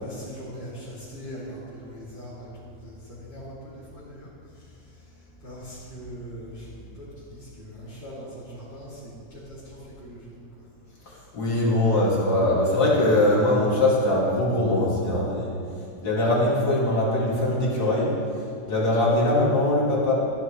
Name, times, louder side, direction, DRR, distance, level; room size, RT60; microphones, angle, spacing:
voice 1, 0.0-10.7 11.1-11.2, equal, 30° left, -13 dB, 2.8 m, -41 dB
voice 2, 11.3-15.5 16.0-18.1 18.7-20.1, left 1 dB, 65° left, -6 dB, 2.9 m, -21 dB
14.0 x 10.5 x 3.1 m, 2.6 s
omnidirectional pair, 1.8 m